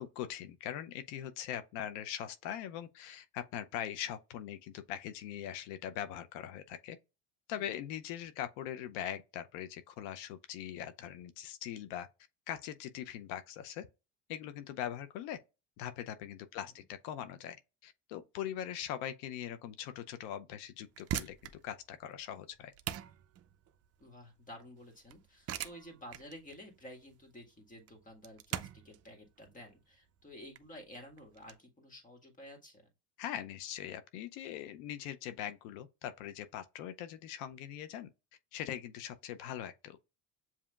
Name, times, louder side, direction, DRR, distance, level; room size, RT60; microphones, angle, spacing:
voice 1, 0.0-7.0 7.5-12.1 12.5-13.9 14.3-15.4 15.8-17.6 17.8-22.7 33.2-38.1 38.5-40.0, left 10 dB, 90° left, 0.7 m, -41 dB
sound 1, 20.8-31.5, right 10 dB, 40° right, 0.5 m, -43 dB
voice 2, 24.0-32.8, equal, 20° left, 1.8 m, -52 dB
7.3 x 2.8 x 2.3 m
cardioid pair, 120°, 37 cm